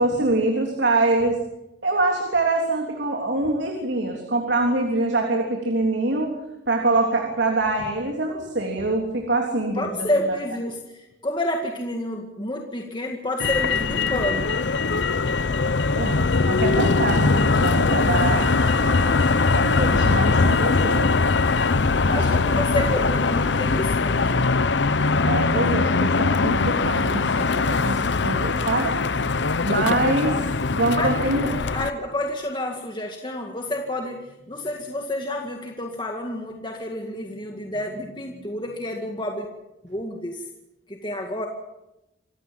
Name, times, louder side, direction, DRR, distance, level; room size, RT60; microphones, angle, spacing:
voice 1, 0.0-1.4 1.8-6.4 6.7-10.1 16.0-19.2 19.5-21.1 22.1-22.3 25.2-28.9 29.6-30.4 30.7-31.5, right 2 dB, 85° right, 2 dB, 3.4 m, -24 dB
voice 2, 9.7-14.6 22.1-24.4 30.9-39.5 39.8-40.5 40.9-41.5, left 1 dB, 25° left, 2 dB, 2.0 m, -29 dB
Motor vehicle (road), 13.4-31.9, left 4 dB, 90° left, 0.8 m, -21 dB
27.0 x 16.0 x 7.5 m, 0.94 s
head